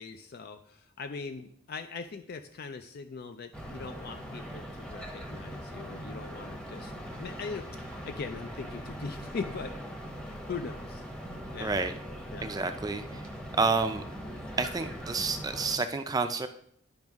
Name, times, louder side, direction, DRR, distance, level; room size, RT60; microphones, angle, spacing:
voice 1, 0.0-6.9 7.2-9.7 10.2-11.0 11.5-11.8 12.3-12.5, left 4 dB, 50° left, 9 dB, 0.4 m, -40 dB
sound 1, 3.5-15.8, equal, 5° left, 0.8 m, -41 dB
voice 2, 11.6-11.9 12.4-13.3 13.6-14.0 14.6-16.5, right 4 dB, 20° right, 8 dB, 0.4 m, -29 dB
10.5 x 5.2 x 3.5 m, 0.66 s
head